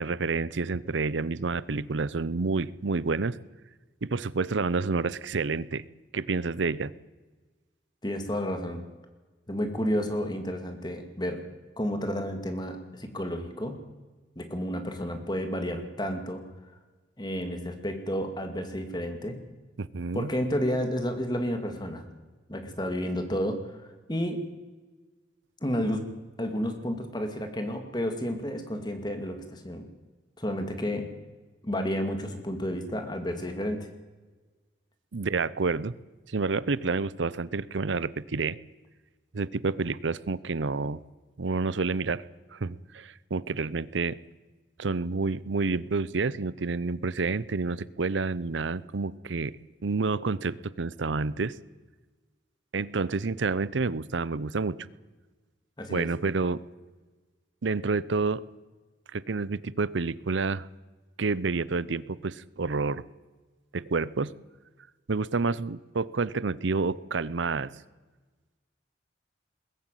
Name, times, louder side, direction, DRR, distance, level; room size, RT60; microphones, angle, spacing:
voice 1, 0.0-3.4 4.0-5.8 6.1-6.9 19.8-20.3 35.1-35.9 36.3-38.6 39.3-41.0 41.4-42.2 42.5-44.2 44.8-49.5 49.8-51.5 52.7-54.8 55.9-56.6 57.6-58.4 59.1-60.7 61.2-63.0 63.7-64.3 65.1-67.7, right 4 dB, 85° right, 19 dB, 0.7 m, -29 dB
voice 2, 8.0-8.8 9.5-11.4 11.8-13.8 14.4-16.4 17.2-19.4 20.1-22.1 22.5-23.6 24.1-24.4 25.6-26.1 26.4-29.8 30.4-31.1 31.6-33.9 55.8-56.1, equal, 25° left, 6 dB, 2.3 m, -31 dB
21.0 x 14.5 x 9.1 m, 1.3 s
head